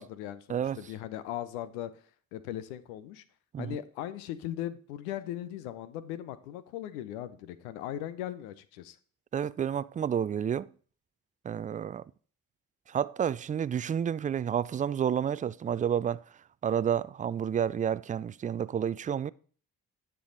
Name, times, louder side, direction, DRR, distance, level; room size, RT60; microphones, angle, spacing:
voice 1, 0.0-1.9 2.3-3.2 3.6-9.0, left 12 dB, 80° left, 0.7 m, -38 dB
voice 2, 9.3-10.7 11.4-12.0 12.9-16.2 16.6-19.3, right 8 dB, 20° right, 0.3 m, -30 dB
10.0 x 6.9 x 3.9 m
hypercardioid pair, 40°, 43 cm